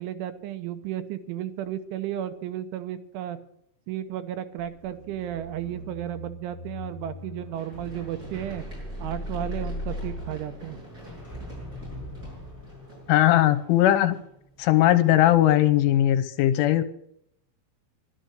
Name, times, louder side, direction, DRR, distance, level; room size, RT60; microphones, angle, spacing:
voice 1, 0.0-3.4 3.9-8.6 9.0-10.8, right 11 dB, 75° right, 9 dB, 3.2 m, -33 dB
sound 1, 4.6-14.9 15.2-15.5, left 1 dB, 5° left, 6.4 m, -39 dB
Run, 7.5-15.4 15.9-16.0, right 1 dB, 20° right, 7.5 m, -48 dB
voice 2, 13.1-14.2 14.6-16.8, left 13 dB, 80° left, 12 dB, 3.2 m, -19 dB
13.0 x 12.0 x 6.4 m, 0.73 s
omnidirectional pair, 5.8 m